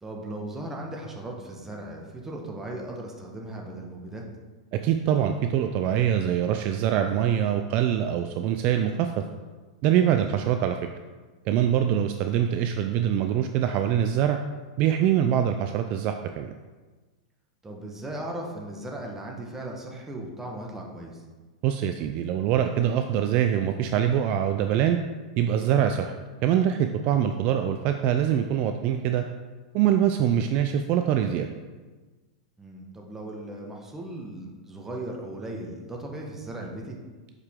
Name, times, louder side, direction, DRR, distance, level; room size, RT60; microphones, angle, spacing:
voice 1, 0.0-4.2 10.1-10.2 17.6-21.2 27.0-27.1 32.6-37.0, right 1 dB, 10° right, -1 dB, 1.2 m, -37 dB
voice 2, 4.7-9.2 9.8-10.8 11.5-14.4 14.8-16.5 21.6-25.0 25.4-26.2 26.4-29.2 29.7-31.5, right 10 dB, 45° right, 6 dB, 0.4 m, -24 dB
6.4 x 4.9 x 3.7 m, 1.3 s
hypercardioid pair, 120°, 4 cm